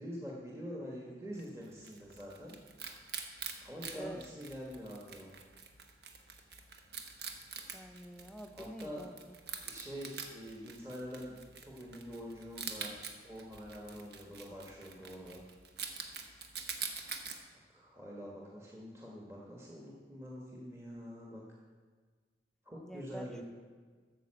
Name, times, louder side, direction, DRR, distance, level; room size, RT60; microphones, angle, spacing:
voice 1, 0.0-2.6 3.6-5.3 8.5-9.0 9.6-11.4 11.6-12.9 13.2-15.4 17.5-21.4 22.6-23.4, equal, 15° right, -3 dB, 1.2 m, -45 dB
Wild animals, 1.4-17.4, right 5 dB, 70° right, 1.1 m, -46 dB
voice 2, 3.9-4.3 7.7-9.3 22.8-23.4, right 1 dB, 5° left, 6 dB, 0.5 m, -47 dB
9.1 x 6.8 x 7.5 m, 1.5 s
head